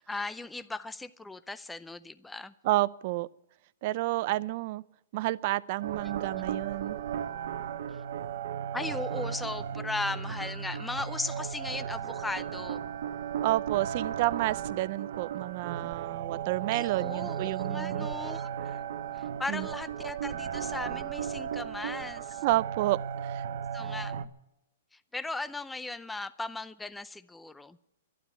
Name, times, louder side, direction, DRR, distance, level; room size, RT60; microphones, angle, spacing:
voice 1, 0.1-2.5 6.3-6.4 8.7-12.8 16.7-18.8 19.1-22.4 23.7-24.3 25.1-27.8, left 2 dB, 5° left, 13 dB, 0.5 m, -37 dB
voice 2, 2.6-3.3 3.8-4.8 5.1-7.0 13.4-18.1 19.5-19.7 22.4-23.4, right 17 dB, 45° right, 19 dB, 0.5 m, -30 dB
sound 1, 5.8-24.3, right 8 dB, 65° right, 0.9 m, -35 dB
12.0 x 12.0 x 9.5 m, 0.82 s
hypercardioid pair, 155°, 0 cm